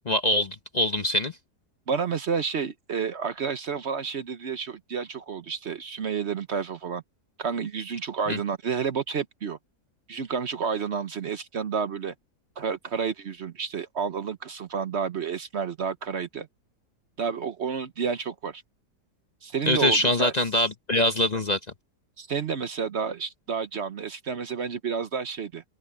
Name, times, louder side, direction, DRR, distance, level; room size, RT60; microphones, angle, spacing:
voice 1, 0.1-1.3 8.3-8.4 19.7-21.6, left 1 dB, 35° left, 0.8 m, -23 dB
voice 2, 1.9-7.0 7.4-9.6 10.1-12.1 12.6-16.5 17.2-18.6 19.4-20.3 22.2-25.6, right 6 dB, 50° right, 0.9 m, -30 dB
open air
omnidirectional pair, 1.7 m